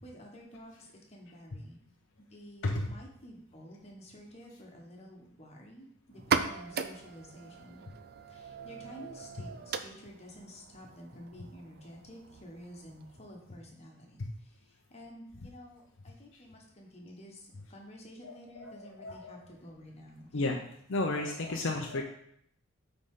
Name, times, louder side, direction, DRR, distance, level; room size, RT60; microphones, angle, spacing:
voice 1, 0.0-1.8 2.2-7.8 8.3-14.6 14.9-20.6 21.8-21.9, equal, 30° left, -1 dB, 1.3 m, -51 dB
sound 1, 6.1-13.6, right 5 dB, 45° right, 0.4 m, -38 dB
voice 2, 18.2-19.4 20.3-20.6 20.9-22.0, left 2 dB, 60° left, 1 dB, 0.7 m, -33 dB
9.2 x 3.9 x 3.8 m, 0.70 s
head